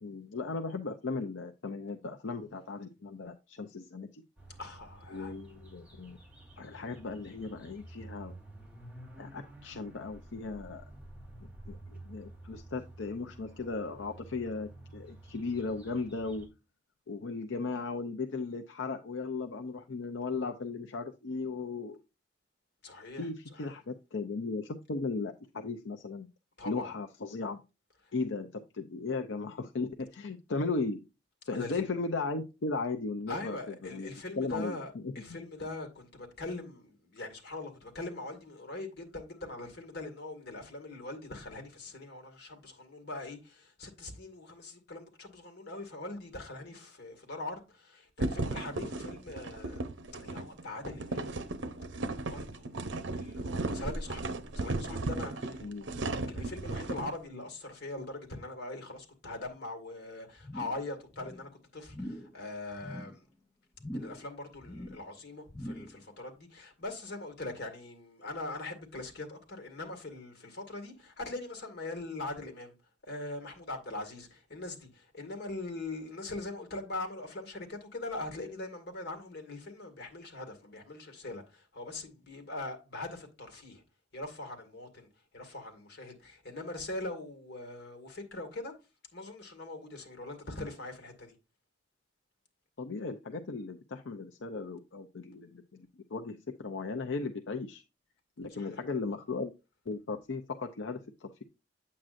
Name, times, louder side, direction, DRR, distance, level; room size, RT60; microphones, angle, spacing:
voice 1, 0.0-4.2 5.1-6.2 6.6-8.3 9.2-10.8 11.7-16.5 17.1-22.0 23.2-26.3 26.7-27.6 28.1-31.0 31.5-33.6 33.8-35.4 55.6-55.9 92.8-97.8 98.4-99.5 99.9-101.4, left 3 dB, 85° left, 0.6 m, -36 dB
sound 1, 4.4-16.5, right 1 dB, 5° right, 3.1 m, -51 dB
voice 2, 4.6-5.3 22.8-23.3 23.5-23.8 26.6-26.9 28.0-28.1 31.5-31.8 33.3-49.9 50.2-51.3 52.2-52.7 53.1-55.6 56.1-63.2 63.9-72.7 73.0-83.8 84.1-85.1 85.3-88.7 89.1-91.3 98.6-98.8, left 2 dB, 60° left, 2.1 m, -42 dB
sound 2, 48.2-57.1, right 2 dB, 85° right, 0.8 m, -36 dB
sound 3, 60.4-60.9 61.1-61.5 61.8-62.3 62.7-63.2 63.8-64.3 64.6-65.1 65.5-66.0 66.4-66.5, equal, 15° left, 0.6 m, -43 dB
8.6 x 7.5 x 2.6 m
head